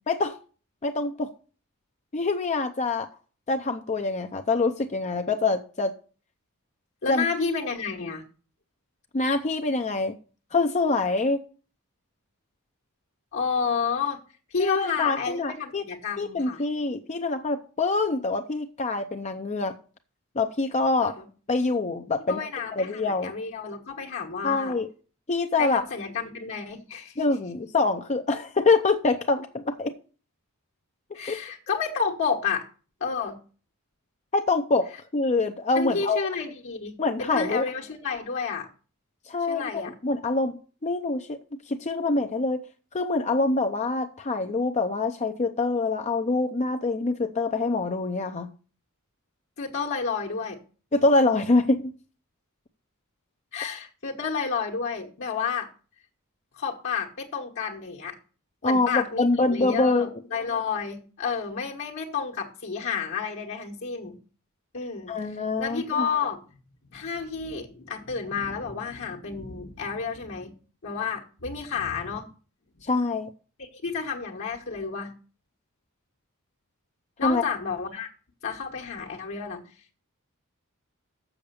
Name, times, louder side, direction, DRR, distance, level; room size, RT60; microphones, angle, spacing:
voice 1, 0.8-1.3 2.1-3.1 3.5-5.9 7.1-7.2 9.1-10.1 10.5-11.4 14.6-15.8 16.2-19.7 20.4-21.2 21.5-22.4 22.7-23.3 24.4-24.9 25.3-25.8 27.2-30.0 31.3-31.4 34.3-36.3 37.0-37.7 39.3-41.4 41.7-42.6 42.9-48.5 50.9-51.9 58.6-60.1 65.1-66.1 72.8-73.3 77.2-77.4, left 3 dB, 30° left, 0.6 m, -25 dB
voice 2, 7.0-8.2 13.3-14.2 14.5-16.6 21.0-21.3 22.3-24.7 25.6-27.1 31.1-32.7 33.0-33.4 35.7-38.7 39.5-39.9 49.6-50.6 53.5-55.7 56.6-58.2 58.6-64.2 64.7-66.4 66.9-70.5 70.8-72.3 73.6-75.1 77.2-78.1 78.4-79.6, left 5 dB, 60° left, 1.4 m, -30 dB
7.1 x 6.7 x 6.7 m
head